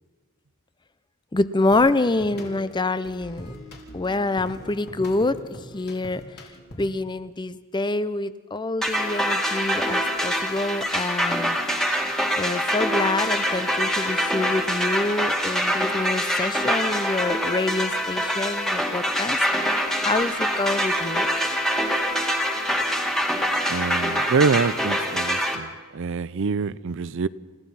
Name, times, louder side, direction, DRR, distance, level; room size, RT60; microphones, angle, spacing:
voice 1, 1.3-3.5 3.9-5.4 5.7-6.2 6.8-11.8 12.4-19.4 19.6-21.3, left 2 dB, 20° left, 0.6 m, -26 dB
sound 1, 1.7-7.1, equal, 50° left, 3.8 m, -42 dB
sound 2, 8.8-25.6, equal, ahead, 2.1 m, -25 dB
voice 2, 23.7-27.3, right 4 dB, 60° right, 0.5 m, -25 dB
29.5 x 15.5 x 5.7 m
head